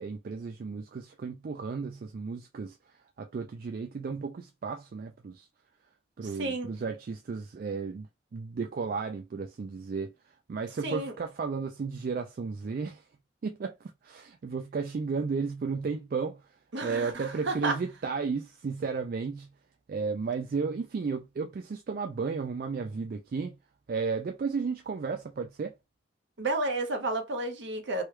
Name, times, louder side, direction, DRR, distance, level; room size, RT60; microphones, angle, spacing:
voice 1, 0.0-5.5 6.2-8.1 8.3-10.1 10.5-13.1 13.4-16.5 16.8-19.5 19.9-23.6 23.9-25.7, right 5 dB, 45° right, 0.3 m, -34 dB
voice 2, 10.8-11.1 16.7-17.8 26.4-28.0, right 2 dB, 60° right, 0.8 m, -31 dB
3.1 x 2.2 x 3.2 m
head